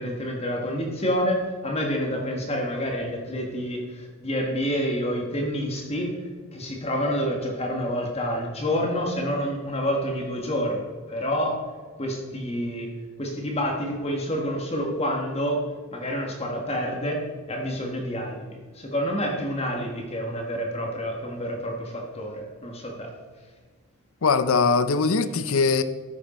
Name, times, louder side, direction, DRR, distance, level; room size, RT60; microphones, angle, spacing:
voice 1, 0.0-6.1 6.5-11.5 12.0-12.9 13.2-15.6 15.9-17.2 17.5-23.1, equal, 25° left, 1.5 m, -28 dB
voice 2, 24.2-25.8, left 4 dB, 65° left, 0.6 m, -21 dB
13.5 x 6.6 x 4.3 m
head